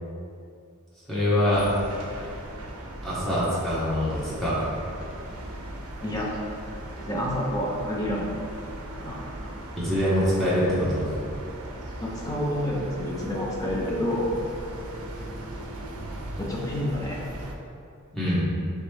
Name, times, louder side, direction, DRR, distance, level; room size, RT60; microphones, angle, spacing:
voice 1, 1.1-1.7 3.0-4.7 9.8-11.1 18.1-18.4, equal, ahead, -11 dB, 1.2 m, -24 dB
sound 1, 1.5-17.5, right 1 dB, 75° right, 0.5 m, -38 dB
voice 2, 7.0-8.3 9.0-9.2 12.0-14.4 16.4-17.2, equal, 15° left, -4 dB, 0.6 m, -28 dB
4.0 x 3.5 x 3.3 m, 2.5 s
head